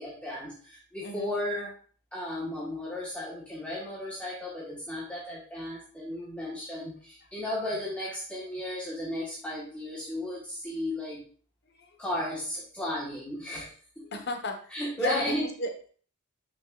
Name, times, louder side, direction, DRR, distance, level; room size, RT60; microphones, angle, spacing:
voice 1, 0.0-1.7 2.1-11.2 12.0-13.7 14.0-14.1 14.7-15.5, left 1 dB, 5° left, -6 dB, 1.5 m, -34 dB
voice 2, 1.0-1.3 11.8-11.9 14.1-15.3 15.6-15.9, left 2 dB, 50° left, 5 dB, 1.3 m, -34 dB
9.0 x 6.1 x 2.5 m, 0.43 s
head